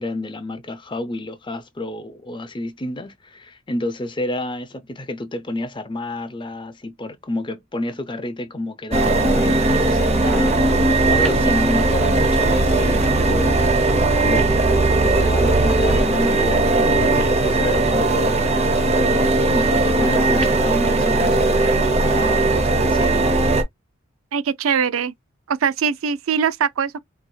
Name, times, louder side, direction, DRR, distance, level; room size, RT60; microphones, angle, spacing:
voice 1, 0.0-13.9 14.3-23.3, left 1 dB, 25° left, 0.6 m, -30 dB
sound 1, 8.9-23.6, right 2 dB, 30° right, 0.7 m, -18 dB
voice 2, 24.3-25.1 25.5-27.0, right 6 dB, 75° right, 0.4 m, -22 dB
4.5 x 2.7 x 2.3 m
head